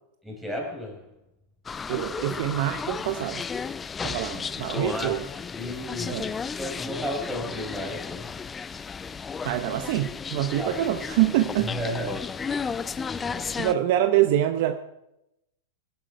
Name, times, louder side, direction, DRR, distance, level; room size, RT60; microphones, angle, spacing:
voice 1, 0.2-1.1 4.3-4.4 4.7-5.2 5.5-8.4 10.6-10.8 11.6-12.4 13.1-13.5, equal, 5° right, 0 dB, 5.1 m, -34 dB
sound 1, 1.7-13.7, left 5 dB, 20° left, 0.4 m, -34 dB
voice 2, 1.9-3.4 4.0-5.3 6.1-6.3 9.4-11.7 13.6-14.7, right 13 dB, 55° right, 9 dB, 0.8 m, -25 dB
18.5 x 9.9 x 4.6 m, 0.86 s
hypercardioid pair, 100°, 0 cm